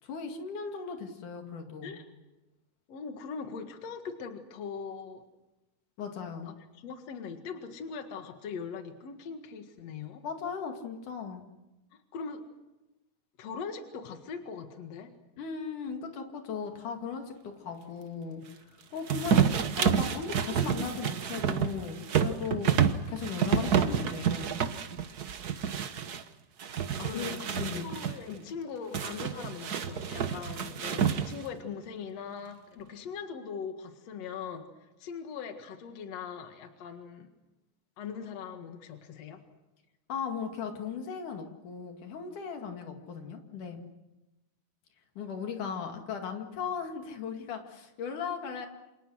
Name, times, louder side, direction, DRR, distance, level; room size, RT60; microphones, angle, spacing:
voice 1, 0.0-2.0 6.0-6.5 10.2-11.4 15.4-19.4 19.8-24.6 27.1-27.8 28.3-28.4 40.1-43.8 45.2-48.7, left 6 dB, 80° left, 4 dB, 3.7 m, -37 dB
voice 2, 2.9-5.2 6.5-10.2 11.9-12.4 13.4-15.1 27.0-34.7 35.0-37.3 38.0-39.4, left 6 dB, 60° left, 6 dB, 2.9 m, -41 dB
sound 1, 19.1-26.2 26.6-28.2 28.9-31.5, right 8 dB, 85° right, 0.8 m, -29 dB
28.0 x 27.0 x 6.4 m, 1.0 s
omnidirectional pair, 3.6 m